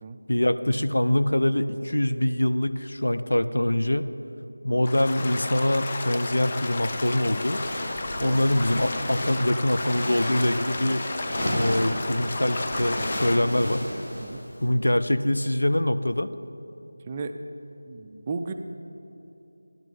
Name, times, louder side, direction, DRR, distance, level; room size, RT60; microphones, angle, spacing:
voice 1, 0.3-4.1 4.6-7.6 8.2-11.0 11.5-13.9 14.6-16.3, left 1 dB, 85° left, 12 dB, 0.5 m, -24 dB
sound 1, 4.8-13.4, left 2 dB, 30° left, 0.6 m, -33 dB
sound 2, 6.9-14.7, equal, 50° left, 2.3 m, -33 dB
voice 2, 17.9-18.5, right 4 dB, 20° right, 7 dB, 0.3 m, -34 dB
12.0 x 6.2 x 6.9 m, 2.9 s
figure-of-eight pair, 170°, 0 cm